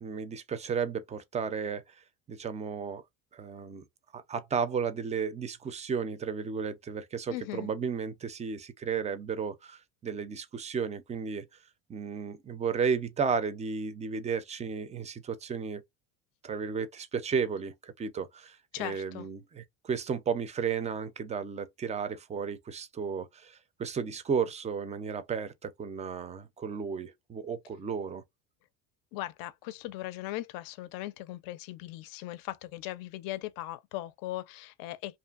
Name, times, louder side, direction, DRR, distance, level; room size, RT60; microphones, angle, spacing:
voice 1, 0.0-1.8 2.3-3.0 3.3-3.8 4.1-11.5 11.9-15.8 16.4-28.2, right 6 dB, 20° right, 0.4 m, -33 dB
voice 2, 7.3-7.7 18.7-19.3 29.1-35.2, left 16 dB, 65° left, 0.5 m, -39 dB
2.6 x 2.5 x 2.3 m
supercardioid pair, 100°, 38 cm